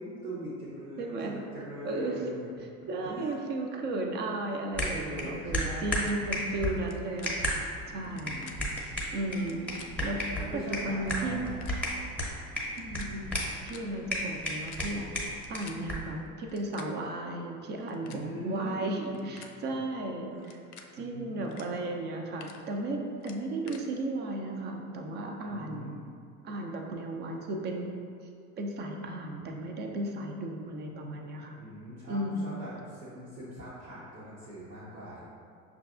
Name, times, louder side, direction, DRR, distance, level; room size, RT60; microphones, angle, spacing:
voice 1, 0.0-2.5 3.0-3.4 4.9-6.1 7.9-8.6 8.9-9.0 10.1-11.7 18.0-19.3 19.7-19.8 20.3-20.5 21.0-21.6 25.4-26.1 31.5-35.2, right 1 dB, 90° right, -10 dB, 0.9 m, -42 dB
voice 2, 1.0-1.3 1.8-2.3 2.9-7.6 7.9-9.6 10.0-10.2 10.5-11.5 12.8-13.3 13.7-15.1 15.5-20.6 20.9-25.9 26.4-27.9 28.6-31.6 32.1-32.5, right 2 dB, 25° right, 2 dB, 0.3 m, -35 dB
sound 1, 4.7-16.1, equal, 5° left, 0.7 m, -34 dB
sound 2, 6.0-6.1 6.8-6.9 7.2-7.3 8.0-8.6 9.4-9.9 10.6-10.7 11.0-11.2 11.6-11.7 12.6-13.1 13.4-13.8 14.3-15.8 16.4-16.9 17.7-18.2 19.0-19.5 20.4-20.9 21.4-21.6 22.0-22.6 23.2-23.8, left 7 dB, 75° left, 0.5 m, -49 dB
5.7 x 2.4 x 2.4 m, 2.3 s
hypercardioid pair, 75°, 45 cm